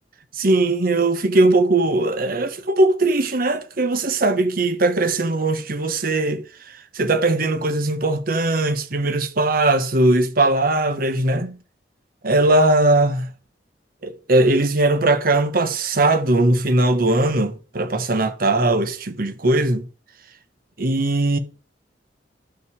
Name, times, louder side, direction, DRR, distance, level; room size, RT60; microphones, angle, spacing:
voice 1, 0.3-11.6 12.2-13.3 14.0-19.9 20.8-21.4, right 2 dB, 55° right, 1.0 m, -19 dB
11.5 x 5.7 x 4.7 m
head